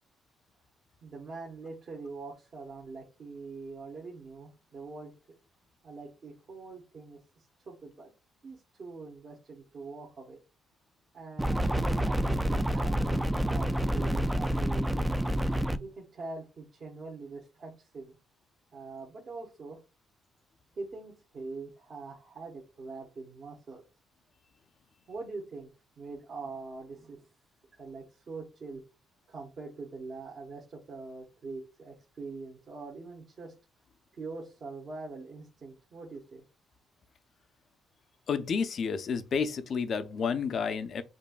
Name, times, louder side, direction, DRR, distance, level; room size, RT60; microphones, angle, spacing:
voice 1, 1.0-5.1 5.8-8.1 8.4-10.4 11.1-15.1 15.8-18.2 18.7-19.8 20.8-23.8 25.1-25.7 26.0-27.3 27.7-28.8 29.3-33.5 34.1-36.4, right 3 dB, 50° right, 1.1 m, -43 dB
sound 1, 11.4-15.8, right 1 dB, 10° right, 0.3 m, -28 dB
voice 2, 38.3-41.0, left 6 dB, 55° left, 0.5 m, -30 dB
5.2 x 2.6 x 2.4 m
cardioid pair, 90°, 0 cm